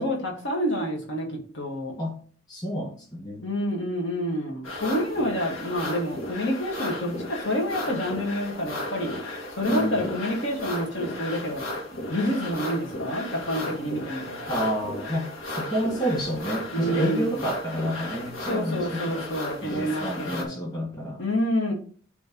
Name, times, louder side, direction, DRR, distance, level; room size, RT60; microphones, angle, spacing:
voice 1, 0.0-1.9 3.4-9.1 9.6-11.6 12.1-14.5 16.7-17.5 18.5-20.6 21.2-21.7, equal, 65° left, -1 dB, 2.2 m, -28 dB
voice 2, 2.5-3.4 9.7-10.3 14.5-19.3 19.6-21.2, equal, 20° left, -1 dB, 2.1 m, -29 dB
sound 1, 4.6-20.4, left 1 dB, 85° left, 2.2 m, -35 dB
7.0 x 3.4 x 6.1 m, 0.43 s
head